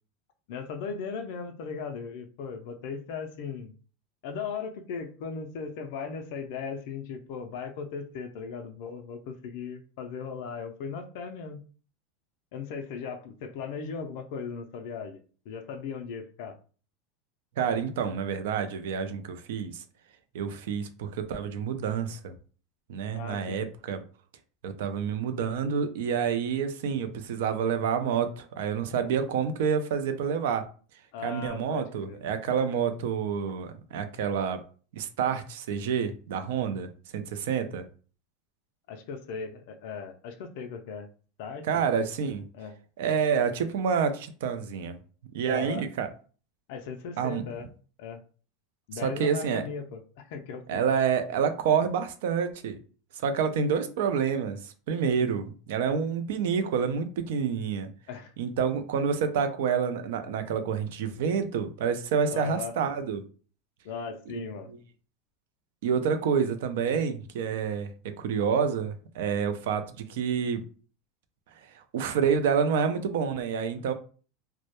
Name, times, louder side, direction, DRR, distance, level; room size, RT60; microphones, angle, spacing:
voice 1, 0.5-3.7 4.2-11.6 12.5-15.2 15.5-16.6 23.1-23.7 31.1-32.2 38.9-41.1 41.4-41.8 42.5-42.7 45.5-45.9 46.7-47.7 48.0-48.2 48.9-50.8 58.1-58.3 62.3-62.8 63.8-64.7, left 5 dB, 55° left, 0.3 m, -37 dB
voice 2, 17.6-19.8 20.3-22.3 22.9-24.0 24.6-30.6 31.2-34.6 34.9-37.8 41.6-42.4 43.0-45.0 45.3-46.1 47.2-47.4 49.0-49.6 50.7-52.8 53.2-57.9 58.4-63.2 64.7-64.8 65.8-70.6 71.9-73.9, right 7 dB, 75° right, 0.4 m, -28 dB
2.1 x 2.0 x 2.8 m
supercardioid pair, 160°, 0 cm